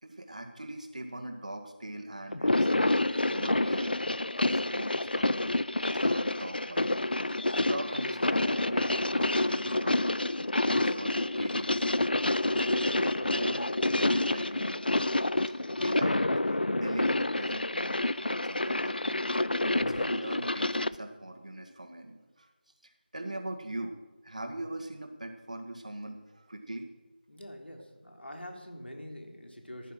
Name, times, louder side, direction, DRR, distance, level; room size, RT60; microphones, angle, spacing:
voice 1, 0.0-3.9 4.5-5.3 6.0-10.1 10.6-12.1 12.5-15.0 15.5-19.2 19.6-22.5 22.8-24.0 24.2-26.9, right 1 dB, 40° right, 4 dB, 1.9 m, -41 dB
sound 1, 2.3-21.0, left 2 dB, 65° left, 0.5 m, -28 dB
voice 2, 27.3-29.9, equal, 85° left, 2 dB, 3.7 m, -45 dB
15.5 x 10.5 x 6.3 m, 1.2 s
figure-of-eight pair, 175°, 6 cm